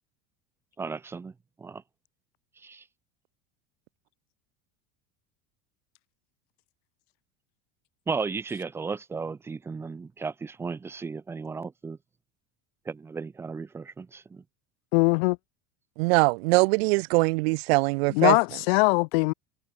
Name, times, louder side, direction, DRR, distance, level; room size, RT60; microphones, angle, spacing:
voice 1, 0.8-1.3 1.6-1.8 2.6-2.8 8.1-12.0 12.9-14.4, right 4 dB, 10° right, 0.5 m, -35 dB
voice 2, 14.9-15.4 18.1-19.3, left 29 dB, 70° left, 0.6 m, -21 dB
voice 3, 16.0-18.4, right 27 dB, 75° right, 0.8 m, -22 dB
cardioid pair, 170°, 31 cm